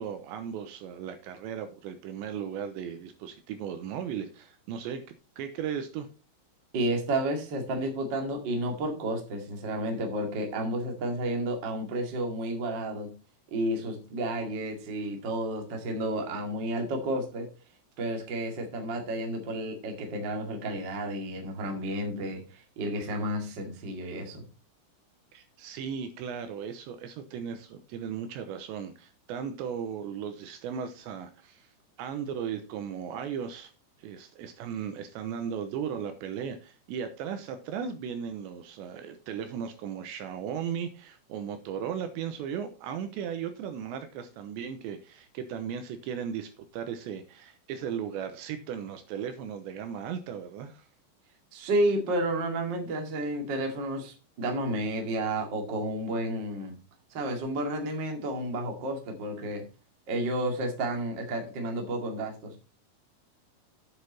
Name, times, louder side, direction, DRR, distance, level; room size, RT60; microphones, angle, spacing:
voice 1, 0.0-6.1 25.3-31.7 32.0-33.7 34.0-50.9, right 8 dB, 80° right, 2.8 m, -36 dB
voice 2, 6.7-13.2 13.5-17.5 18.0-24.4 51.5-56.7 57.1-59.7 60.1-62.5, right 1 dB, 50° right, 1.3 m, -31 dB
8.9 x 8.0 x 4.1 m
omnidirectional pair, 5.8 m